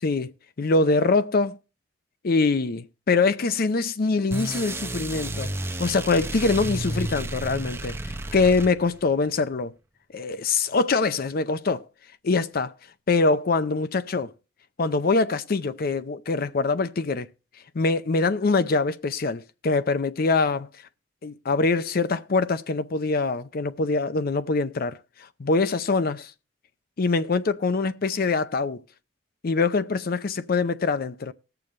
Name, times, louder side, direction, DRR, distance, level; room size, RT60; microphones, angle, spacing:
voice 1, 0.6-1.6 2.2-5.5 5.8-8.0 8.3-9.7 10.1-11.8 12.2-12.7 13.1-14.3 14.8-17.3 17.7-20.7 21.2-25.0 25.4-26.3 27.0-28.8 29.4-31.3, left 3 dB, 50° left, 0.5 m, -24 dB
sound 1, 4.3-9.1, right 1 dB, 15° right, 0.7 m, -32 dB
20.0 x 6.9 x 3.1 m
head